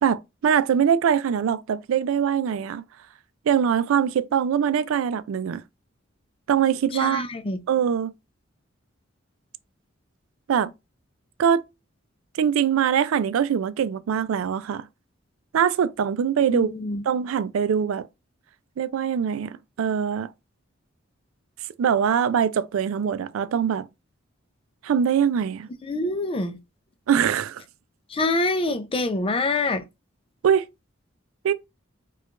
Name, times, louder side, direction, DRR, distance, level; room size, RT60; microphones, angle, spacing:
voice 1, 0.0-2.8 3.5-5.6 6.5-7.2 7.7-8.1 10.5-10.7 11.4-11.6 12.3-14.9 15.5-16.7 17.1-18.1 18.8-20.3 21.8-23.9 24.8-25.7 27.1-27.6 30.4-30.7 31.4-31.5, right 8 dB, 90° right, 0.3 m, -22 dB
voice 2, 6.9-7.6 16.4-17.0 25.8-26.6 28.1-29.8, left 2 dB, 25° left, 0.4 m, -26 dB
4.5 x 2.3 x 2.4 m
head